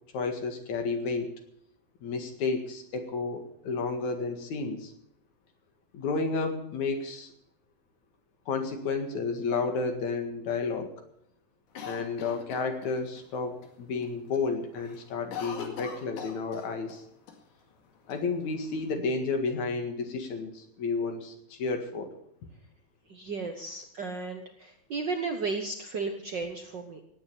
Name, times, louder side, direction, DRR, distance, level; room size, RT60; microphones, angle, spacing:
voice 1, 0.1-1.3 2.0-4.9 5.9-7.3 8.5-10.9 11.8-17.0 18.1-22.1, left 4 dB, 70° left, 5 dB, 3.2 m, -31 dB
Cough, 11.8-13.2 13.6-13.7 14.0-14.4 14.7-17.0 17.3-17.4 18.1-18.9, left 6 dB, 85° left, 3.6 m, -41 dB
voice 2, 23.1-27.0, right 4 dB, 55° right, 4 dB, 1.3 m, -34 dB
17.5 x 9.2 x 7.0 m, 0.73 s
omnidirectional pair, 3.5 m